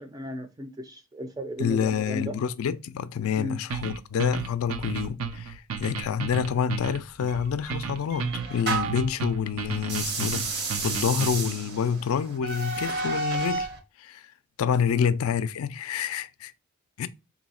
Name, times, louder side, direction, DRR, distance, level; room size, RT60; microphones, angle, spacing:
voice 1, 0.0-2.4 3.4-3.6 15.0-15.1, equal, 15° right, 0.4 m, -35 dB
voice 2, 1.6-13.7 14.0-14.3 14.6-16.5 17.0-17.1, left 7 dB, 80° left, 0.3 m, -28 dB
sound 1, 3.7-11.6, right 6 dB, 80° right, 0.5 m, -33 dB
sound 2, 7.3-9.1 9.8-13.8, right 3 dB, 50° right, 0.8 m, -31 dB
3.1 x 2.7 x 4.1 m
head